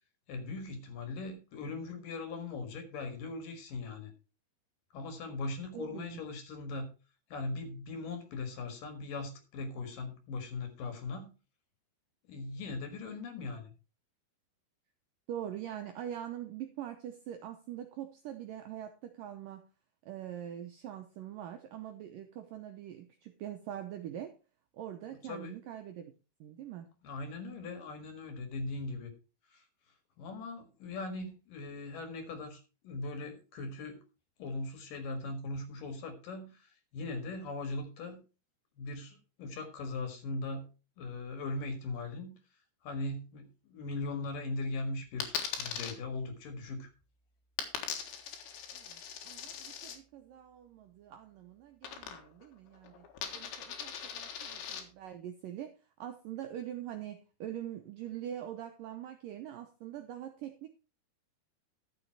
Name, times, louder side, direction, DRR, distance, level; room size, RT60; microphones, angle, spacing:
voice 1, 0.3-4.1 4.9-6.9 7.3-11.3 12.3-13.7 25.2-25.6 27.0-29.1 29.5-29.6 30.2-34.0 34.4-38.2 38.8-40.7 41.0-42.3 42.8-46.9, left 3 dB, 60° left, 7 dB, 2.9 m, -39 dB
voice 2, 5.7-6.2 15.3-19.6 20.0-24.3 24.7-26.1 26.4-26.9 48.7-53.0 53.3-55.7 56.0-60.7, right 11 dB, 85° right, 6 dB, 1.9 m, -43 dB
Coin (dropping), 45.2-45.9 47.6-50.0 51.8-52.5 52.7-54.8, left 7 dB, 90° left, 3.9 m, -41 dB
12.0 x 7.0 x 4.6 m, 0.32 s
omnidirectional pair, 5.1 m